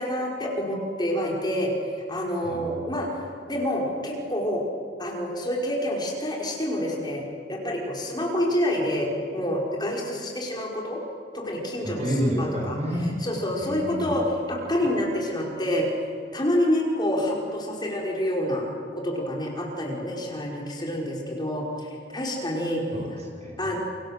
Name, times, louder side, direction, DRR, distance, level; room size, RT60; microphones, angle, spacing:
voice 1, 0.0-4.7 5.0-11.0 11.3-12.8 13.2-15.9 16.3-18.7 19.0-22.8 23.6-23.8, left 1 dB, 25° left, -1 dB, 5.2 m, -27 dB
voice 2, 2.4-2.9 11.8-13.1 13.6-14.1 22.9-23.8, equal, 40° right, 0 dB, 6.7 m, -30 dB
28.5 x 25.5 x 7.6 m, 2.3 s
head